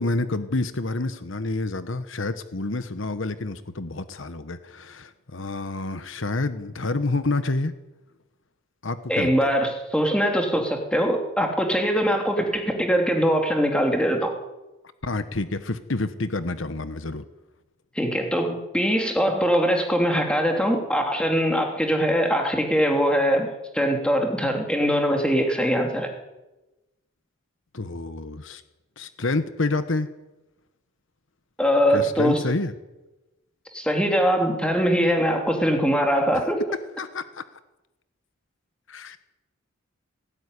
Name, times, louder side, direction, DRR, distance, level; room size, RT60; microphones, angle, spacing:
voice 1, 0.0-7.7 8.8-9.5 15.0-17.2 27.7-28.6 29.0-30.1 31.9-32.7 36.3-36.4 37.0-37.4 38.9-39.2, left 2 dB, 65° left, 11 dB, 1.2 m, -28 dB
voice 2, 9.1-14.3 17.9-23.5 23.7-26.1 31.6-32.4 33.7-36.7, equal, 5° left, 2 dB, 3.1 m, -22 dB
18.5 x 17.5 x 9.9 m, 1.0 s
head